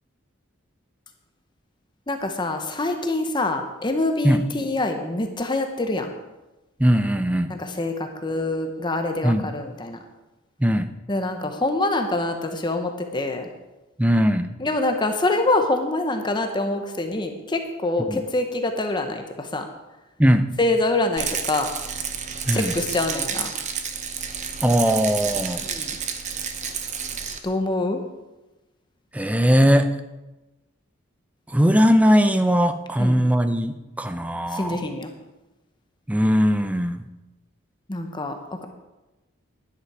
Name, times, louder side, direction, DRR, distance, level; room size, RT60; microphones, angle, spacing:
voice 1, 2.1-6.1 7.5-10.0 11.1-13.5 14.6-19.7 20.6-21.7 22.5-23.5 25.6-26.0 27.4-28.0 33.0-33.3 34.5-35.1 37.9-38.6, left 2 dB, 20° left, 5 dB, 0.9 m, -25 dB
voice 2, 6.8-7.5 9.2-9.5 10.6-10.9 14.0-14.5 18.1-18.2 20.2-20.6 22.5-22.7 24.6-25.6 29.1-30.0 31.5-34.8 36.1-37.0, equal, 5° right, 9 dB, 0.5 m, -19 dB
Rattle, 21.2-27.4, right 7 dB, 35° right, 0.9 m, -30 dB
11.0 x 9.7 x 4.8 m, 1.1 s
head